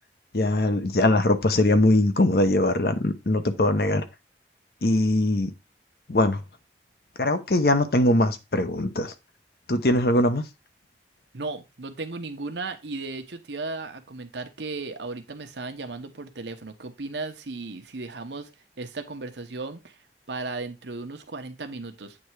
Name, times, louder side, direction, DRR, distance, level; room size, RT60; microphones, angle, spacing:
voice 1, 0.3-4.0 4.8-5.5 6.1-6.4 7.2-9.1 9.7-10.4, left 1 dB, 55° left, 0.8 m, -21 dB
voice 2, 11.3-18.5 18.8-20.0 20.3-22.2, right 3 dB, 80° right, 1.0 m, -35 dB
8.6 x 3.4 x 4.6 m
head